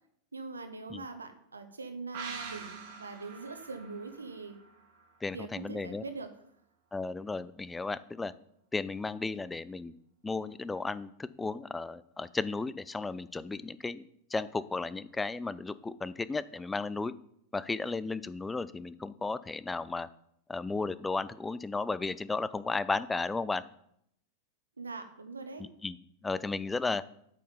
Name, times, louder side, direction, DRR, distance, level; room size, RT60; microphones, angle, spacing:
voice 1, 0.3-4.6 5.3-6.3 24.8-25.7, right 3 dB, 75° right, 8 dB, 1.0 m, -42 dB
sound 1, 2.1-5.6 5.9-6.0, right 5 dB, 50° right, 1.4 m, -45 dB
voice 2, 5.2-6.0 6.9-8.3 8.7-9.9 10.2-17.1 17.5-20.1 20.5-23.6 25.6-26.0 26.2-27.0, left 3 dB, 10° left, 17 dB, 0.4 m, -34 dB
8.5 x 5.5 x 5.4 m, 0.72 s
figure-of-eight pair, 90°, 0 cm